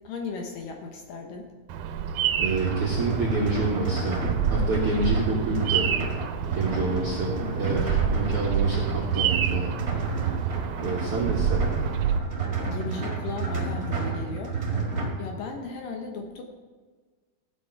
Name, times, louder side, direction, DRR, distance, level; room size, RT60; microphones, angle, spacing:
voice 1, 0.0-1.5 12.6-14.6 15.2-16.4, left 4 dB, 70° left, 3 dB, 2.3 m, -36 dB
Bird vocalization bird call bird song, 1.7-12.2, right 8 dB, 80° right, 2.5 m, -28 dB
voice 2, 2.4-5.9 6.5-9.8 10.8-11.8, right 2 dB, 65° right, -3 dB, 1.4 m, -28 dB
sound 1, 2.5-15.1, right 4 dB, 35° right, 1.6 m, -30 dB
15.5 x 7.9 x 4.5 m, 1.4 s
omnidirectional pair, 4.7 m